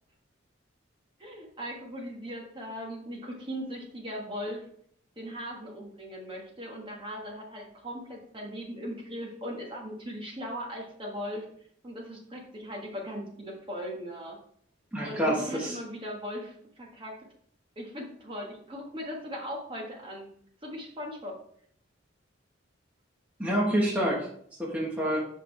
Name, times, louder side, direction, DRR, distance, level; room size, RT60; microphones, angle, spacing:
voice 1, 1.2-4.7 5.2-11.5 11.8-14.4 15.0-17.2 17.7-20.3 20.6-21.4, equal, 25° right, -1 dB, 1.4 m, -39 dB
voice 2, 14.9-15.8 23.4-24.3 24.6-25.2, equal, 5° right, -5 dB, 1.2 m, -27 dB
7.5 x 5.3 x 3.2 m, 0.62 s
head